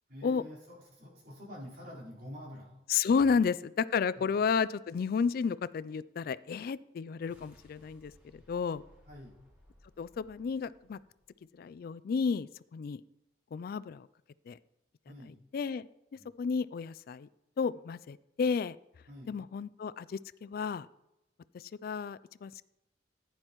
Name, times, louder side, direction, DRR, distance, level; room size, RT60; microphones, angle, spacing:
voice 1, 0.1-2.8 4.2-4.3 9.1-9.4 15.1-15.4 16.2-16.3 19.1-19.4, left 1 dB, 60° right, -6 dB, 4.3 m, -48 dB
voice 2, 2.9-8.8 10.0-11.0 11.6-13.0 13.5-14.1 14.5-14.6 15.5-15.9 16.4-17.3 17.6-18.8 19.3-20.9 21.5-22.6, left 5 dB, 55° left, 17 dB, 0.3 m, -32 dB
sound 1, 7.1-11.6, equal, 10° right, 4.4 m, -62 dB
15.0 x 9.7 x 3.1 m, 0.90 s
head